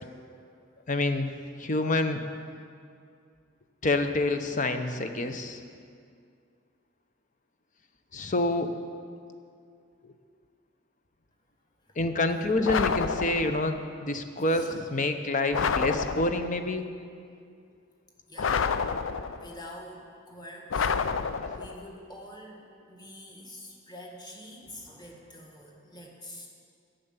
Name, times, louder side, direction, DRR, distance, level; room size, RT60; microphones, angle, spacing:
voice 1, 0.9-1.3 1.6-2.2 3.8-5.6 8.1-8.7 12.0-16.8 21.4-21.5, left 2 dB, 40° left, 8 dB, 0.7 m, -27 dB
sound 1, 12.6-13.7 15.5-16.6 18.4-19.5 20.7-21.8, left 5 dB, 80° left, 0.5 m, -29 dB
voice 2, 18.3-18.7 19.4-21.3 21.5-26.5, left 1 dB, 20° left, 0 dB, 1.8 m, -46 dB
11.5 x 6.7 x 9.0 m, 2.3 s
head